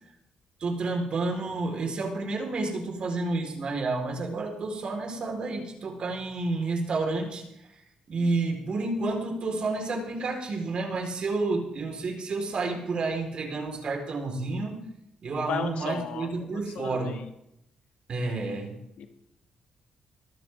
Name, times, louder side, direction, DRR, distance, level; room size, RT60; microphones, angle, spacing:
voice 1, 0.6-7.4 8.1-14.8 15.2-17.2 18.1-18.8, right 3 dB, 50° right, 2 dB, 4.5 m, -30 dB
voice 2, 15.5-17.1 19.0-19.1, left 7 dB, 80° left, 5 dB, 2.2 m, -35 dB
22.5 x 13.0 x 3.8 m, 0.78 s
cardioid pair, 95°, 2 cm